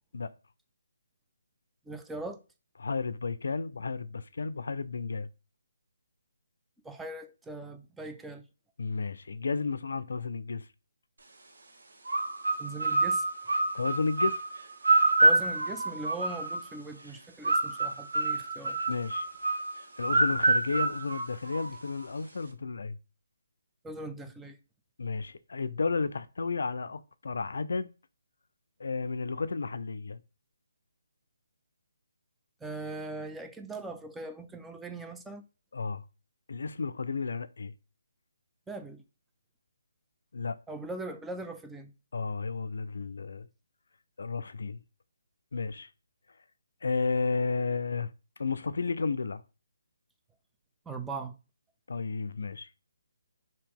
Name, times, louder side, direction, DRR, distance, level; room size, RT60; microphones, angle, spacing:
voice 1, 1.9-2.4 6.8-8.4 12.6-13.2 15.2-18.8 23.8-24.6 32.6-35.4 38.7-39.0 40.7-41.9 50.9-51.3, right 2 dB, 5° right, 0.4 m, -40 dB
voice 2, 2.8-5.3 8.8-10.7 13.7-14.4 18.9-19.3 20.0-23.0 25.0-27.9 28.8-30.2 35.7-36.0 36.5-37.7 40.3-40.6 42.1-43.5 44.2-44.8 45.5-45.9 46.8-48.1 48.4-49.4 51.9-52.7, left 4 dB, 70° left, 0.3 m, -32 dB
sound 1, 12.1-16.8 17.4-21.9, right 2 dB, 80° right, 1.0 m, -27 dB
2.9 x 2.7 x 3.6 m
hypercardioid pair, 155°, 0 cm